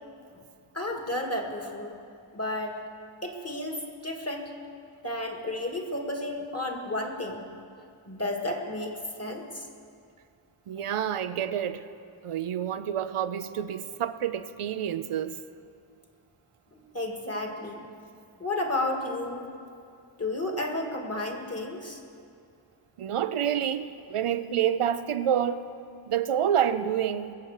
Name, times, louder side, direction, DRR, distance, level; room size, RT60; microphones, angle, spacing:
voice 1, 0.7-2.0 2.3-2.8 3.2-4.5 5.0-7.4 8.1-9.7 10.8-10.9 16.7-17.8 18.4-19.5 20.2-22.0, left 1 dB, 30° left, 2 dB, 2.0 m, -32 dB
voice 2, 10.7-11.8 12.2-15.4 23.0-25.7 26.1-27.3, right 9 dB, 85° right, 12 dB, 0.7 m, -28 dB
22.0 x 7.7 x 6.5 m, 2.4 s
wide cardioid pair, 65°, 50 cm